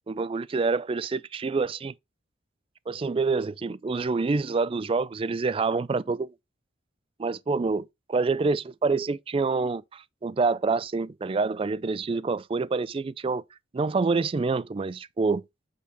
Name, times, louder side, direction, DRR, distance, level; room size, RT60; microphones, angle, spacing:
voice 1, 0.1-1.9 2.9-6.3 7.2-13.4 13.7-15.4, right 4 dB, 30° right, 0.3 m, -27 dB
8.2 x 4.0 x 4.2 m
head